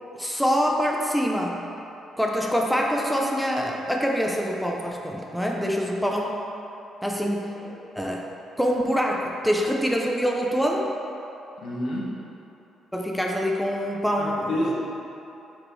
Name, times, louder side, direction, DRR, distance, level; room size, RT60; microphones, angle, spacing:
voice 1, 0.1-1.7 2.2-6.4 7.0-7.5 7.9-8.3 8.6-10.9 12.9-14.7, equal, ahead, -1 dB, 0.6 m, -25 dB
voice 2, 11.6-12.2 14.2-14.7, left 1 dB, 75° left, -5 dB, 1.3 m, -29 dB
6.2 x 4.5 x 4.0 m, 3.0 s
cardioid pair, 90°, 0 cm